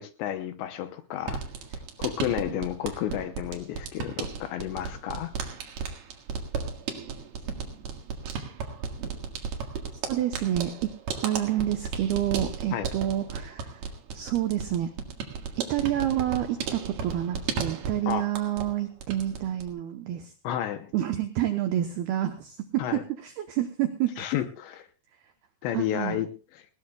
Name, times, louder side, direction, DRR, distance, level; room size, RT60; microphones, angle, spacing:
voice 1, 0.0-1.4 1.7-5.3 12.7-12.9 18.1-18.3 20.4-20.9 22.8-23.0 24.2-24.9 25.6-26.7, left 11 dB, 75° left, 9 dB, 2.8 m, -31 dB
sound 1, 1.2-18.7 19.0-19.7, right 6 dB, 60° right, 3.2 m, -35 dB
voice 2, 10.1-10.9 11.2-13.8 14.1-14.9 15.6-20.3 20.9-24.3 25.7-26.2, right 12 dB, 85° right, 6 dB, 2.2 m, -28 dB
19.5 x 18.5 x 2.3 m, 0.33 s
omnidirectional pair, 5.7 m